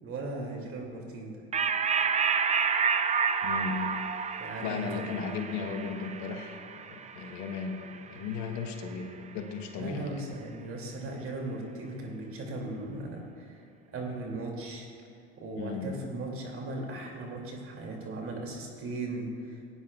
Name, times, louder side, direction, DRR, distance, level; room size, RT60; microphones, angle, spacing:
voice 1, 0.0-1.4 4.4-5.4 9.8-13.6 13.9-14.9 15.4-19.6, right 2 dB, 40° right, 0 dB, 2.7 m, -38 dB
sound 1, 1.5-8.4, right 6 dB, 20° right, 0.6 m, -30 dB
voice 2, 3.4-3.9 4.6-10.2 15.6-15.9, left 5 dB, 60° left, 5 dB, 1.2 m, -36 dB
17.5 x 9.5 x 2.4 m, 2.4 s
hypercardioid pair, 85°, 32 cm